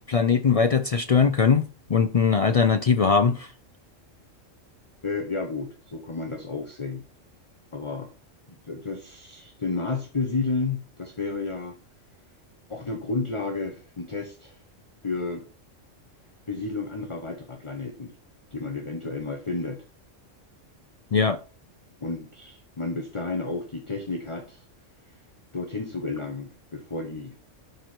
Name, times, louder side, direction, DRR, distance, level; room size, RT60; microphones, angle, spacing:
voice 1, 0.0-1.6 1.9-3.5 21.1-21.4, left 5 dB, 65° left, 0.3 m, -20 dB
voice 2, 5.0-7.0 7.7-8.1 8.6-11.7 12.7-14.6 15.0-15.4 16.5-18.1 18.5-19.8 22.0-24.6 25.5-27.3, left 3 dB, 25° left, 1.0 m, -31 dB
11.5 x 4.6 x 4.4 m
omnidirectional pair, 1.3 m